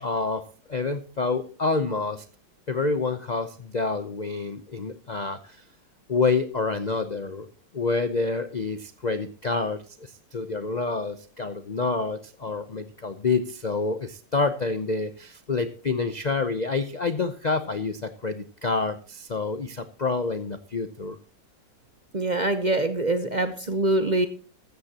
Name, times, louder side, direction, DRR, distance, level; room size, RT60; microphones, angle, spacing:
voice 1, 0.0-2.2 2.7-5.6 6.1-7.5 7.7-21.2, left 4 dB, 75° left, 10 dB, 0.4 m, -28 dB
voice 2, 22.1-24.3, right 2 dB, 35° right, 10 dB, 0.7 m, -24 dB
14.5 x 13.5 x 2.9 m, 0.37 s
omnidirectional pair, 2.0 m